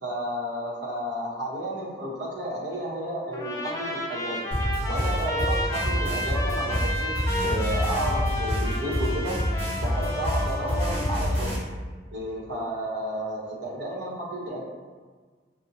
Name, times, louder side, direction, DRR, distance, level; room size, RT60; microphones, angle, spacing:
voice 1, 0.0-4.4 4.8-9.4 9.8-11.5 12.1-14.6, right 1 dB, 80° right, -5 dB, 1.0 m, -32 dB
Trumpet, 3.3-11.2, equal, 15° left, 0.3 m, -32 dB
sound 1, 4.5-11.6, equal, 30° right, 1.4 m, -27 dB
5.0 x 2.1 x 2.8 m, 1.5 s
head